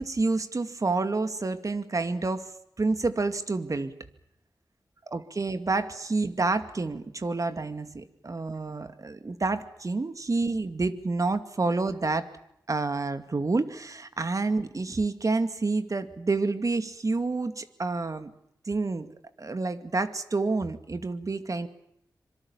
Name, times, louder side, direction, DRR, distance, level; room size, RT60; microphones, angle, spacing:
voice 1, 0.0-2.5 2.8-3.9 5.1-12.3 12.7-18.3 18.6-19.1 19.4-21.7, right 3 dB, 50° right, 10 dB, 2.4 m, -28 dB
26.0 x 24.5 x 7.2 m, 0.76 s
wide cardioid pair, 65°, 7 cm